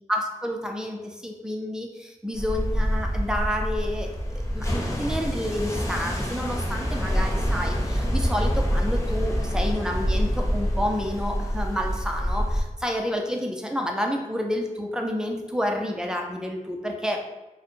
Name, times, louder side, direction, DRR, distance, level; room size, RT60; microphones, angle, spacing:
voice 1, 0.1-4.1 4.5-17.3, equal, 5° right, 2 dB, 0.5 m, -29 dB
sound 1, 2.3-12.6, equal, 25° left, 0.8 m, -26 dB
4.5 x 2.2 x 3.1 m, 1.1 s
wide cardioid pair, 70°, 13 cm